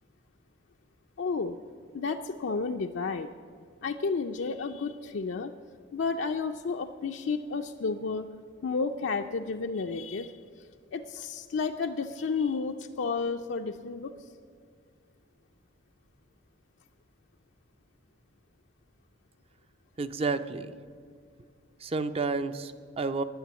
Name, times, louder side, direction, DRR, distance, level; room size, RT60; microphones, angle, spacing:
voice 1, 1.2-1.6 1.9-3.3 3.8-5.5 5.9-8.3 8.6-10.3 10.9-14.1, left 4 dB, 65° left, 4 dB, 0.4 m, -31 dB
voice 2, 20.0-20.7 21.8-23.2, right 3 dB, 30° right, 11 dB, 0.5 m, -30 dB
10.5 x 9.5 x 8.1 m, 2.2 s
head